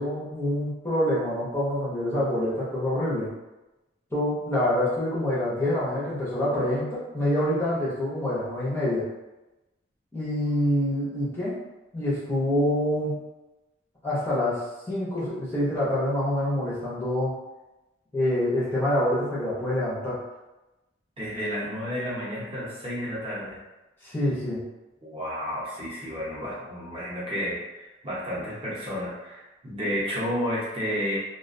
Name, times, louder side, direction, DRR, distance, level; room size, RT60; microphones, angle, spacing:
voice 1, 0.0-3.3 4.1-9.1 10.1-11.6 11.9-13.2 14.0-14.6 14.9-17.3 18.1-20.2 24.0-24.6, left 1 dB, 10° left, -9 dB, 0.5 m, -26 dB
voice 2, 21.2-23.6 25.0-31.2, equal, 30° right, -8 dB, 0.7 m, -31 dB
2.3 x 2.1 x 2.5 m, 1.0 s
head